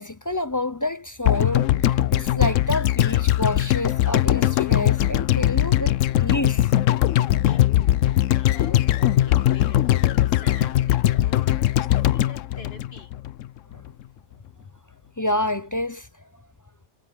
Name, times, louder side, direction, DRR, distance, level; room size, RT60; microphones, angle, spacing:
voice 1, 0.0-5.9 6.2-6.6 15.2-16.1, left 1 dB, 20° left, 0.5 m, -28 dB
sound 1, 1.2-13.5 13.7-13.8, left 13 dB, 80° left, 1.0 m, -20 dB
voice 2, 7.4-13.1, left 3 dB, 50° left, 2.1 m, -45 dB
omnidirectional pair, 1.3 m